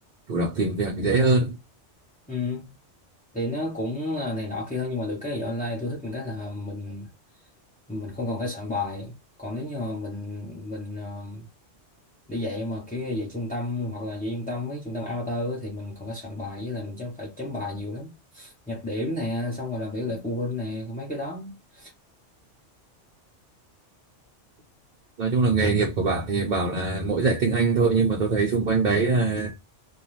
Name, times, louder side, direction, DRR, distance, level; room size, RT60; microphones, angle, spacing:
voice 1, 0.3-1.5 25.2-29.5, right 3 dB, 45° right, 0.7 m, -23 dB
voice 2, 2.3-2.7 3.3-7.1 7.9-11.5 12.3-21.9, left 2 dB, 10° left, 0.7 m, -31 dB
2.6 x 2.3 x 3.0 m
omnidirectional pair, 1.2 m